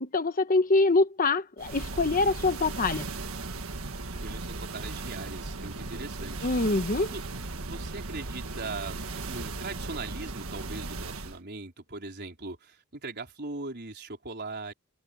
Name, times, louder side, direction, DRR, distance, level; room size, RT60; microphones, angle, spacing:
voice 1, 0.0-3.1 6.4-7.1, left 3 dB, 40° left, 1.1 m, -24 dB
sound 1, 1.6-11.4, right 3 dB, 75° right, 1.7 m, -37 dB
voice 2, 4.2-6.5 7.0-7.2 7.5-9.0 9.2-14.7, right 3 dB, 50° right, 4.3 m, -40 dB
head